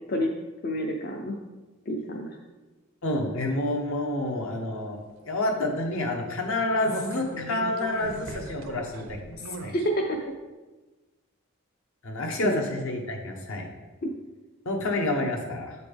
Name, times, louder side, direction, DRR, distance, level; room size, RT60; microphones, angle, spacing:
voice 1, 0.6-1.4 1.9-2.4 9.6-9.8 10.1-10.2 12.4-12.6 14.0-14.1, left 1 dB, 45° left, 2 dB, 0.4 m, -29 dB
voice 2, 3.0-5.0 5.2-9.4 9.6-9.7 12.0-13.7 14.6-15.8, left 1 dB, 70° left, 2 dB, 0.9 m, -28 dB
sound 1, 6.8-9.9 10.3-10.4, right 3 dB, 70° right, 0.5 m, -39 dB
7.5 x 4.1 x 3.3 m, 1.2 s
head